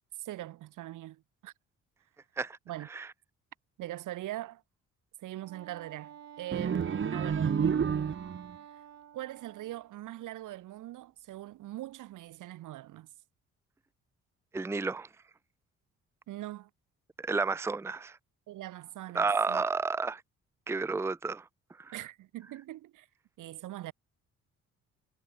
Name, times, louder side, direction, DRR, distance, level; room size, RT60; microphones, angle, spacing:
voice 1, 0.2-1.5 2.7-2.9 3.8-4.6 5.2-7.5 9.1-13.1 16.3-16.7 18.5-19.6 21.9-23.1 23.4-23.9, right 15 dB, 85° right, 6.9 m, -42 dB
Wind instrument woodwind instrument, 5.3-10.0, right 10 dB, 60° right, 2.9 m, -50 dB
sound 1, 6.5-8.6, right 7 dB, 40° right, 1.9 m, -29 dB
voice 2, 14.5-15.1 17.2-18.2 19.1-20.2 20.7-21.5 21.8-21.9, right 4 dB, 10° right, 0.6 m, -31 dB
cardioid pair, 90°, 30 cm